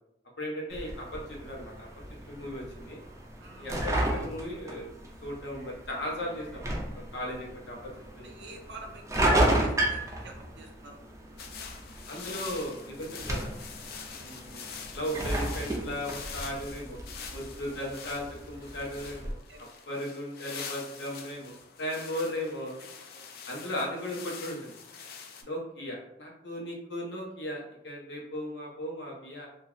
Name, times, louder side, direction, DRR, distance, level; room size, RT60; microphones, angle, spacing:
voice 1, 0.4-1.9 2.3-3.0 3.6-4.9 5.2-6.6 6.9-7.8 8.1-8.3 12.1-13.5 14.1-14.6 14.9-17.0 17.3-19.4 19.9-22.7 23.4-24.8 25.4-29.5, equal, 75° left, -2 dB, 0.8 m, -36 dB
sound 1, 0.7-19.3, right 1 dB, 15° right, 0.4 m, -33 dB
voice 2, 3.4-3.9 8.2-11.6 17.5-18.0 19.5-19.7 23.1-23.3, right 3 dB, 75° right, 2 dB, 0.5 m, -49 dB
sound 2, 11.4-25.4, left 6 dB, 55° left, 0.4 m, -45 dB
2.5 x 2.4 x 3.0 m, 0.81 s
head